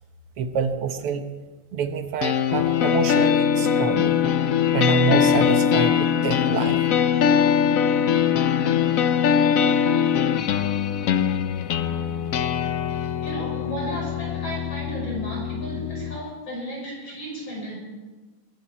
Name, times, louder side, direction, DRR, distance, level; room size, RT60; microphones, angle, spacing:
voice 1, 0.4-1.2 1.7-4.1 4.7-6.8, right 5 dB, 85° right, 7 dB, 2.1 m, -26 dB
sound 1, 2.2-16.2, left 8 dB, 85° left, 0.7 m, -22 dB
voice 2, 12.9-17.8, right 1 dB, 60° left, -3 dB, 6.6 m, -34 dB
23.0 x 12.0 x 4.4 m, 1.3 s
omnidirectional pair, 2.4 m